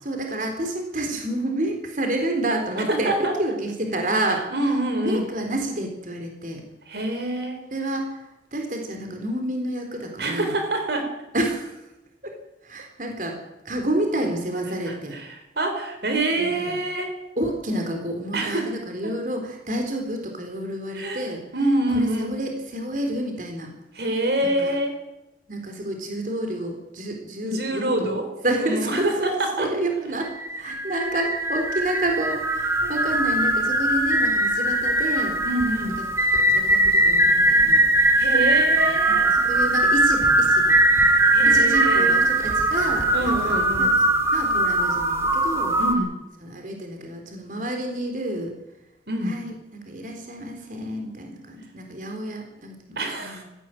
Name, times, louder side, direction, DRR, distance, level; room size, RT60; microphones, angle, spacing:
voice 1, 0.0-4.7 5.0-6.6 7.7-10.5 11.3-11.8 12.2-12.3 12.6-13.4 13.6-15.2 16.4-16.8 17.4-21.4 21.9-23.7 24.4-24.7 25.5-29.3 29.6-35.4 36.3-37.8 39.1-40.8 41.4-44.1 44.3-45.8 46.4-48.5 49.2-53.4, right 1 dB, 45° right, 3 dB, 4.1 m, -29 dB
voice 2, 2.8-3.4 4.5-5.2 6.9-7.6 10.2-11.1 14.9-17.2 18.3-18.7 19.0-19.1 20.9-22.4 23.9-25.0 27.4-28.3 28.6-29.7 30.0-30.1 32.8-32.9 35.4-36.0 38.2-39.3 41.3-42.3 43.1-43.9 45.8-46.1 49.1-49.4 53.0-53.4, right 1 dB, 65° right, 5 dB, 4.1 m, -26 dB
sound 1, 30.2-45.9, right 1 dB, 15° right, 2.1 m, -20 dB
19.0 x 15.5 x 9.2 m, 0.96 s
head